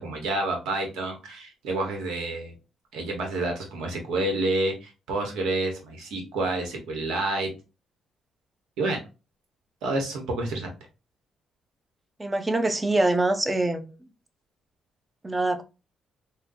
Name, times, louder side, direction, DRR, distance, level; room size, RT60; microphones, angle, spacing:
voice 1, 0.0-2.5 2.9-7.5 8.8-9.0 9.8-10.7, right 2 dB, 85° right, 1.1 m, -29 dB
voice 2, 12.2-13.9 15.2-15.6, right 2 dB, 15° right, 0.6 m, -24 dB
3.7 x 2.3 x 2.6 m
cardioid pair, 90°, 0 cm